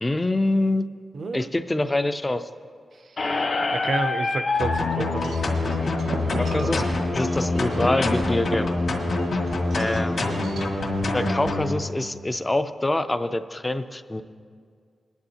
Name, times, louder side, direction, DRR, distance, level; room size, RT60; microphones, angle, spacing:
voice 1, 0.0-0.9 1.3-2.5 6.4-8.7 9.7-10.3 11.1-14.2, left 2 dB, 15° left, 10 dB, 0.4 m, -25 dB
voice 2, 1.1-1.5 3.0-3.3 3.7-5.5 9.8-9.9, right 3 dB, 50° right, 10 dB, 0.5 m, -30 dB
Squeak, 3.2-8.2, left 3 dB, 45° left, 1.0 m, -29 dB
sound 1, 4.6-11.7, left 2 dB, 65° left, 1.9 m, -25 dB
Wind chime / Wind, 5.2-11.5, right 3 dB, 80° right, 0.8 m, -37 dB
21.0 x 10.5 x 2.8 m, 2.1 s
wide cardioid pair, 150°, 0 cm